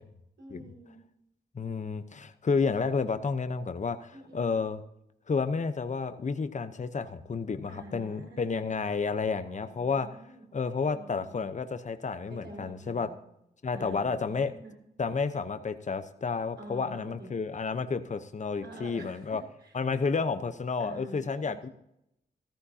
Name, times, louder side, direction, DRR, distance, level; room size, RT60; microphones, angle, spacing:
voice 1, 0.4-1.0 4.1-4.5 7.7-8.6 9.4-10.4 10.8-11.4 12.3-13.2 13.7-14.7 16.6-17.3 18.6-19.7 20.8-21.7, right 1 dB, 75° right, -1 dB, 5.0 m, -47 dB
voice 2, 1.5-4.8 5.3-10.1 10.5-13.1 13.6-14.5 15.0-19.4 19.7-21.7, left 5 dB, 45° left, 10 dB, 0.8 m, -31 dB
14.0 x 14.0 x 2.8 m, 0.80 s
cardioid pair, 65°, 18 cm